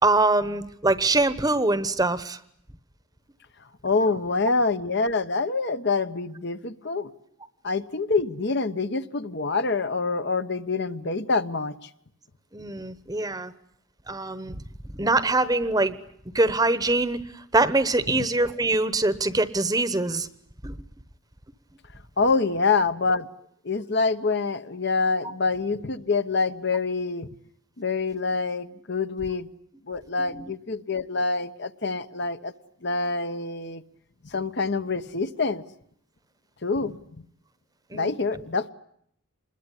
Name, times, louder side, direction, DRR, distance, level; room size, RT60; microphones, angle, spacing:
voice 1, 0.0-2.4 12.5-13.5 14.1-14.6 14.9-16.0 16.3-20.3 20.6-20.8 30.3-30.5 37.9-38.4, right 2 dB, 20° right, 14 dB, 1.0 m, -24 dB
voice 2, 3.8-7.1 7.6-11.9 18.1-18.2 22.2-23.3 23.6-27.3 27.8-29.5 29.9-32.5 32.8-33.8 34.2-35.6 36.6-37.0 37.9-38.7, left 4 dB, 55° left, 10 dB, 1.1 m, -26 dB
25.5 x 21.0 x 9.9 m, 0.72 s
head